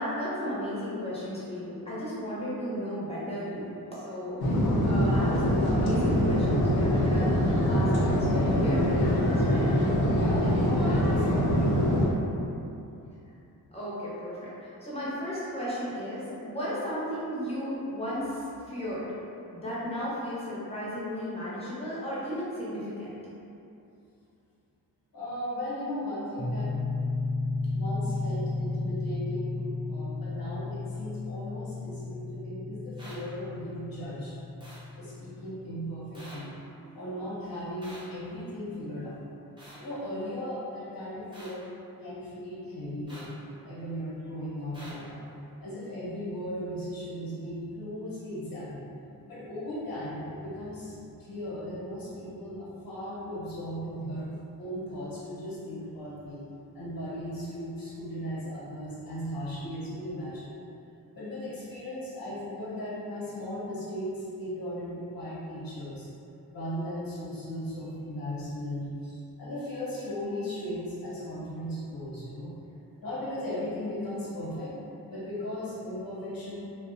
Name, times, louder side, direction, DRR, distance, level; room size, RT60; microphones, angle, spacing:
voice 1, 0.0-4.5 4.8-9.7 13.7-14.3 14.6-19.1 19.5-23.2, equal, 15° left, -9 dB, 0.8 m, -34 dB
sound 1, 4.4-12.1, equal, 85° left, 0.6 m, -24 dB
voice 2, 10.1-11.7 25.1-26.7 27.7-34.3 34.9-39.2 39.8-41.6 42.0-43.4 43.6-45.2 45.6-48.9 49.2-54.3 54.6-56.4 56.7-60.5 61.1-66.1 66.5-72.5 73.0-74.8 75.1-76.6, equal, 65° left, -9 dB, 0.9 m, -37 dB
sound 2, 26.4-35.9, left 3 dB, 60° right, 0.7 m, -34 dB
sound 3, 33.0-33.2 34.6-34.8 36.1-36.4 37.8-38.0 39.6-39.8 41.3-41.5 43.1-43.3 44.7-44.9, right 1 dB, 15° right, 0.8 m, -47 dB
2.4 x 2.1 x 2.5 m, 2.7 s
cardioid pair, 70°, 37 cm